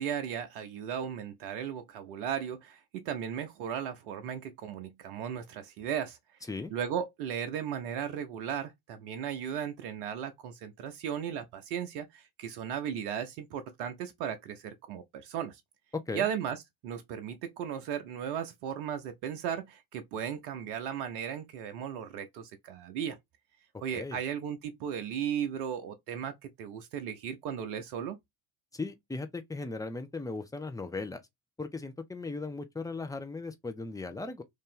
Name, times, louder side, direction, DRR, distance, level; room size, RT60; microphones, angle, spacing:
voice 1, 0.0-6.2 6.7-15.6 16.1-23.2 23.8-28.2, right 8 dB, 70° right, 0.7 m, -36 dB
voice 2, 28.7-31.2 31.6-34.4, left 3 dB, 5° left, 0.8 m, -37 dB
3.1 x 2.7 x 3.7 m
figure-of-eight pair, 45°, 49 cm